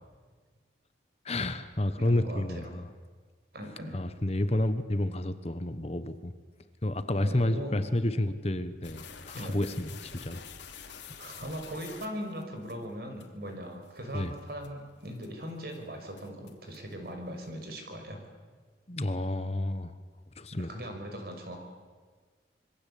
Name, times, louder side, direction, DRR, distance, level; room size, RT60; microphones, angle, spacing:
voice 1, 1.2-2.9 3.9-6.3 6.8-10.4 14.1-14.3 18.9-19.9 20.4-20.7, left 1 dB, 35° left, 11 dB, 1.2 m, -30 dB
voice 2, 2.0-2.7 3.5-4.0 7.2-7.8 9.3-9.6 11.2-18.2 20.5-21.6, equal, 55° right, 4 dB, 5.7 m, -39 dB
sound 1, 8.8-12.7 13.2-13.3 13.9-14.0 14.4-14.7 15.2-15.4 15.7-15.8 16.2-16.9, left 6 dB, 80° left, 2.9 m, -47 dB
26.0 x 22.5 x 8.5 m, 1.5 s
head